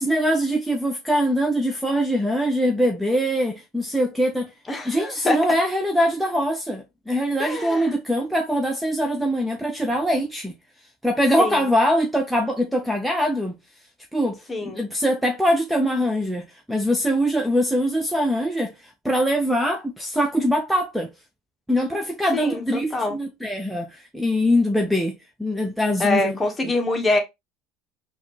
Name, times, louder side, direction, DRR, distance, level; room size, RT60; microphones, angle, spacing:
voice 1, 0.0-4.5 4.8-10.5 11.0-13.6 14.1-21.1 21.7-26.3, equal, 5° right, 0.7 m, -23 dB
voice 2, 4.7-5.4 7.4-7.9 11.4-11.6 14.5-14.8 22.3-23.2 26.0-27.2, left 2 dB, 20° left, 1.3 m, -24 dB
4.1 x 2.6 x 3.0 m
hypercardioid pair, 85°, 0 cm